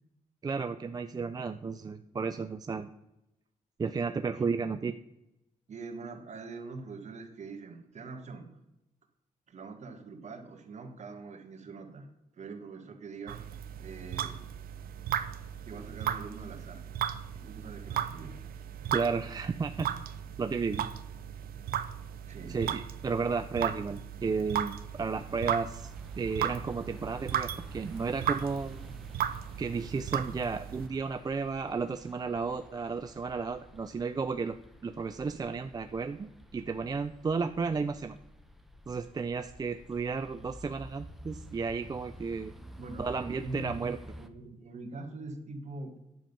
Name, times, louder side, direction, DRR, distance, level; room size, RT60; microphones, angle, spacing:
voice 1, 0.4-2.9 3.8-4.9 18.9-19.9 20.4-20.8 22.5-25.9 26.2-28.8 29.6-34.6 34.8-38.2 38.9-42.5 43.0-44.0, right 5 dB, 25° right, 9 dB, 0.4 m, -33 dB
voice 2, 5.7-8.5 9.5-12.1 12.3-13.5 13.8-14.3 15.6-16.8 17.3-18.3 22.3-22.6 25.3-25.4 42.8-43.1 43.4-43.7 44.2-45.9, right 3 dB, 50° right, 4 dB, 1.6 m, -43 dB
sound 1, 13.3-30.9, right 10 dB, 90° right, 0.6 m, -36 dB
sound 2, 25.1-44.3, equal, ahead, 0.9 m, -51 dB
10.0 x 7.1 x 5.3 m, 0.91 s
cardioid pair, 110°, 15 cm